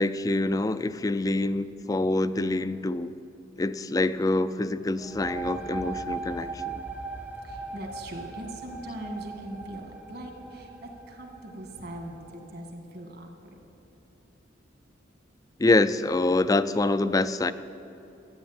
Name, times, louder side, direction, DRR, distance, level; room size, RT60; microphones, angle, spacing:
voice 1, 0.0-3.1 3.6-6.8 15.6-17.5, left 2 dB, 20° left, 13 dB, 0.4 m, -25 dB
sound 1, 5.0-12.4, right 3 dB, 10° right, 0.7 m, -39 dB
voice 2, 7.4-13.5, right 1 dB, 55° right, 3 dB, 2.1 m, -41 dB
13.5 x 9.5 x 8.8 m, 2.9 s
head